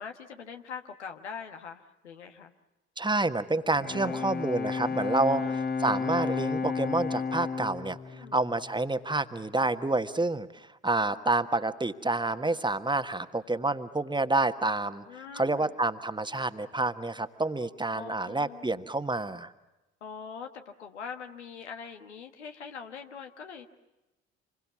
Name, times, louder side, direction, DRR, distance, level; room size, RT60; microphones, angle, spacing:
voice 1, 0.0-2.5 4.0-4.4 5.2-5.6 8.1-8.4 15.1-15.7 17.9-18.8 20.0-23.7, left 6 dB, 85° left, 6 dB, 1.3 m, -43 dB
voice 2, 3.0-5.4 5.8-15.0 15.3-19.5, right 2 dB, 15° right, 10 dB, 1.5 m, -28 dB
Bowed string instrument, 3.6-9.3, left 5 dB, 30° left, 1.4 m, -33 dB
27.0 x 22.5 x 7.2 m, 1.0 s
figure-of-eight pair, 50°, 33 cm